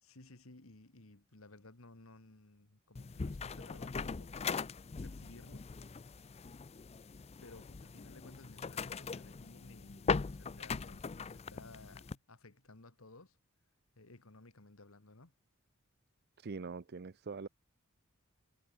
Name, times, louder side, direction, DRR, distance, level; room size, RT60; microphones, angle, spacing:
voice 1, 0.0-4.3 5.0-5.8 7.4-13.4 14.0-15.3, left 2 dB, 70° left, 2.0 m, -57 dB
sound 1, 3.0-12.2, left 5 dB, 30° left, 0.4 m, -40 dB
voice 2, 16.4-17.5, right 4 dB, 50° right, 0.6 m, -43 dB
head